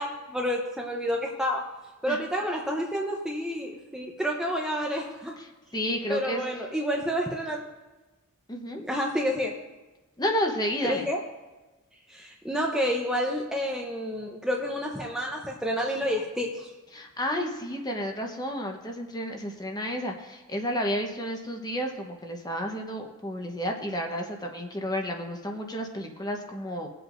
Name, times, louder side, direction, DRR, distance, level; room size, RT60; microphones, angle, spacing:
voice 1, 0.0-1.7 2.0-5.3 6.1-7.6 8.9-9.5 10.8-11.2 12.1-16.7, equal, 5° right, -1 dB, 0.8 m, -29 dB
voice 2, 5.4-6.4 8.5-8.8 10.2-11.0 16.9-26.9, equal, 20° left, 3 dB, 1.1 m, -31 dB
21.0 x 7.8 x 2.6 m, 1.1 s
head